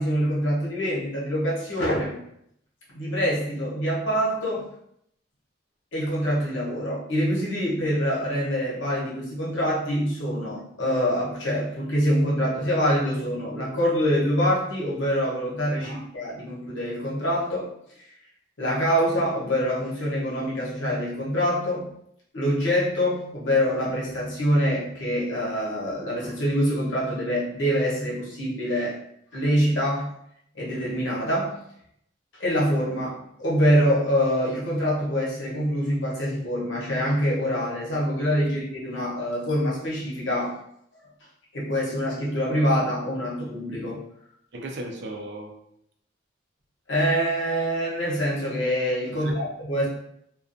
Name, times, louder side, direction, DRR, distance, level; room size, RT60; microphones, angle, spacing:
voice 1, 0.0-2.2 2.9-4.7 5.9-17.7 18.0-18.1 18.6-21.9 22.3-29.0 29.3-30.0 30.5-31.6 32.3-40.6 41.5-44.0 46.9-49.9, equal, 80° left, -6 dB, 0.9 m, -25 dB
voice 2, 44.5-45.5 49.1-49.4, right 1 dB, 65° right, 2 dB, 0.4 m, -36 dB
2.4 x 2.2 x 2.5 m, 0.74 s
head